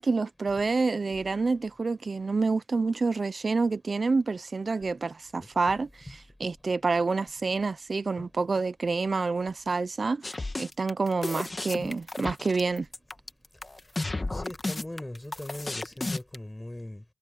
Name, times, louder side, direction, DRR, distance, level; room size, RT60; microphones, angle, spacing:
voice 1, 0.0-12.9, right 4 dB, 55° right, 0.5 m, -28 dB
sound 1, 10.2-16.4, left 2 dB, 30° left, 1.5 m, -33 dB
voice 2, 14.1-17.0, left 1 dB, 15° left, 7.9 m, -40 dB
wide cardioid pair, 90°, 0 cm